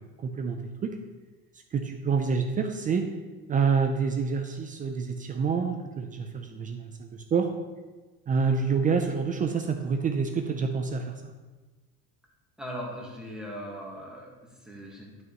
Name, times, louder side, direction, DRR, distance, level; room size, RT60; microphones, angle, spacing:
voice 1, 0.2-1.0 1.7-3.1 3.5-7.5 8.3-11.3, right 5 dB, 25° right, 5 dB, 0.5 m, -27 dB
voice 2, 12.6-15.2, equal, ahead, -3 dB, 1.6 m, -39 dB
10.5 x 6.3 x 3.0 m, 1.2 s
cardioid pair, 140°, 31 cm